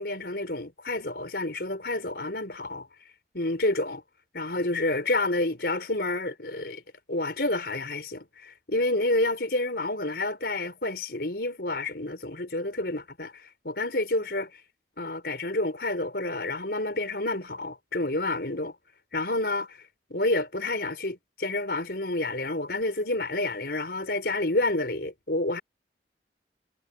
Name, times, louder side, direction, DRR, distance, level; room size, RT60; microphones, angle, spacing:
voice 1, 0.0-2.9 3.3-4.0 4.3-6.8 7.1-14.5 15.0-18.7 19.1-19.8 20.1-25.6, left 2 dB, 60° left, 4.9 m, -29 dB
head